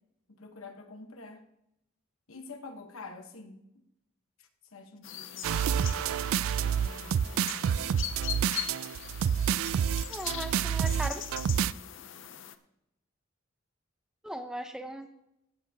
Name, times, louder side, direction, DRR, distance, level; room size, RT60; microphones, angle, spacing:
voice 1, 0.3-1.4 2.3-3.6 4.4-6.2 6.6-7.8, left 3 dB, 85° left, 6 dB, 1.2 m, -48 dB
sound 1, 5.0-12.5, left 11 dB, 65° left, 0.6 m, -41 dB
sound 2, 5.4-11.7, right 8 dB, 80° right, 0.3 m, -28 dB
voice 2, 10.1-11.2 14.2-15.2, equal, 5° right, 6 dB, 0.7 m, -38 dB
15.5 x 8.8 x 2.8 m, 0.82 s
head